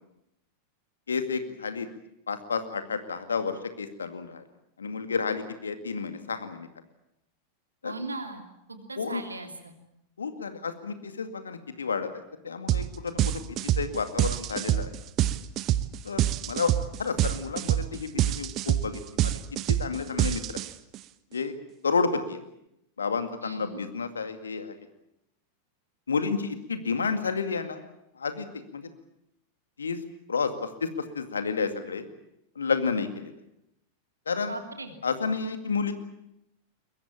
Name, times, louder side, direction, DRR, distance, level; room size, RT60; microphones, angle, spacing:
voice 1, 1.1-1.9 2.3-4.4 4.8-6.7 7.8-7.9 9.0-9.2 10.2-14.9 16.0-16.2 16.5-16.7 17.0-19.3 19.7-20.4 21.3-21.5 21.8-22.4 23.0-24.7 26.1-27.8 28.2-28.8 29.8-30.0 30.3-30.9 31.1-32.1 32.6-33.4 34.3-34.6 35.0-35.9, left 5 dB, 70° left, 9 dB, 2.2 m, -30 dB
voice 2, 7.8-8.4 8.7-9.7 23.4-23.8 34.5-34.9, right 2 dB, 80° right, 5 dB, 3.0 m, -38 dB
sound 1, 12.7-12.9 13.2-21.0, right 13 dB, 35° right, 1.0 m, -26 dB
22.0 x 21.5 x 8.7 m, 0.83 s
figure-of-eight pair, 90°, 0 cm